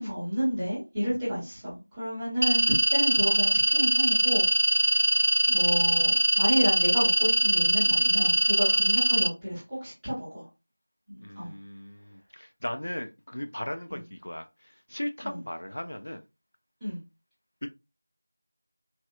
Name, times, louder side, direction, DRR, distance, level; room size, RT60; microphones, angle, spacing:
voice 1, 0.0-4.4 4.7-10.5 11.1-11.5 13.9-14.0 15.2-15.4 16.8-17.0, equal, ahead, 0.9 m, -31 dB
sound 1, 2.4-9.3, right 1 dB, 50° right, 0.3 m, -23 dB
voice 2, 11.2-16.2 17.6-17.7, left 1 dB, 70° left, 0.5 m, -37 dB
4.1 x 2.3 x 2.4 m
figure-of-eight pair, 180°, 0 cm